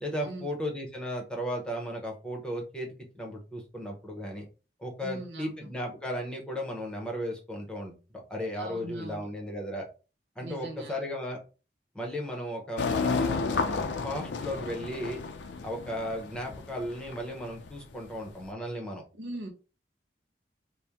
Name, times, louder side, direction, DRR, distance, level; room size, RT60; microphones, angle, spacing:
voice 1, 0.0-2.9 3.1-4.4 4.8-8.0 8.3-9.9 10.4-11.4 11.9-15.2 15.6-19.0, equal, 5° left, 0 dB, 0.8 m, -35 dB
voice 2, 5.0-5.7 8.6-9.3 10.4-11.0 19.1-19.5, right 1 dB, 80° right, 3 dB, 1.1 m, -40 dB
sound 1, 12.8-18.4, left 4 dB, 80° left, 0.5 m, -32 dB
4.2 x 2.1 x 3.5 m, 0.33 s
head